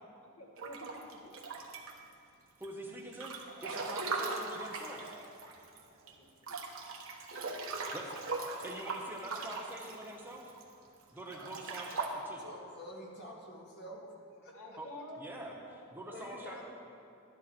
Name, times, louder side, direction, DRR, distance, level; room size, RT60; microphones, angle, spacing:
voice 1, 0.2-1.4 5.8-6.6 14.5-16.3, left 1 dB, 70° left, -1 dB, 1.6 m, -51 dB
Breathing / Bathtub (filling or washing) / Splash splatter, 0.6-2.1 2.6-5.8 6.1-6.2 6.4-10.6 11.2-12.1, right 3 dB, 70° right, 1.2 m, -39 dB
voice 2, 2.6-5.1 7.9-10.5 11.1-12.4 14.8-14.9 15.2-15.5 15.9-16.6, right 1 dB, 10° right, -1 dB, 0.9 m, -45 dB
voice 3, 12.4-14.6 16.1-16.6, equal, 50° left, -1 dB, 1.7 m, -48 dB
11.5 x 10.0 x 4.4 m, 2.6 s
head